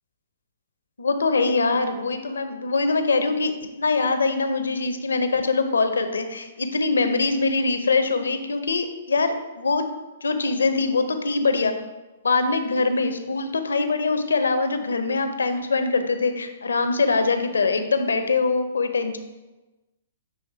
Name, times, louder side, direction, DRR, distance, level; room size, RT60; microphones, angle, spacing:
voice 1, 1.0-3.5 3.8-9.9 10.2-11.7 12.2-19.2, left 3 dB, 90° left, 8 dB, 0.6 m, -23 dB
7.0 x 3.2 x 4.6 m, 1.1 s
hypercardioid pair, 135°, 0 cm